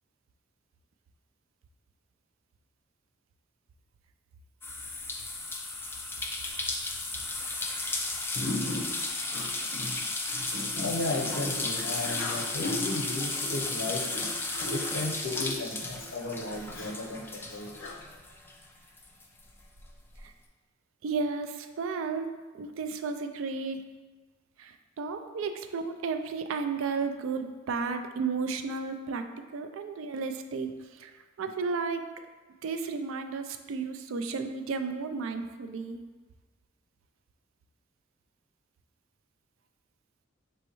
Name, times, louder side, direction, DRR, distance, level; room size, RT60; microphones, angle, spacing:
sound 1, 4.6-18.6 19.0-20.2, left 2 dB, 10° left, 0.4 m, -34 dB
voice 1, 8.3-17.9, left 2 dB, 65° left, -1 dB, 0.8 m, -34 dB
voice 2, 21.0-23.8 24.6-29.3 29.5-32.1 32.6-36.0, right 4 dB, 70° right, 8 dB, 0.4 m, -33 dB
5.3 x 3.1 x 3.0 m, 1.4 s
head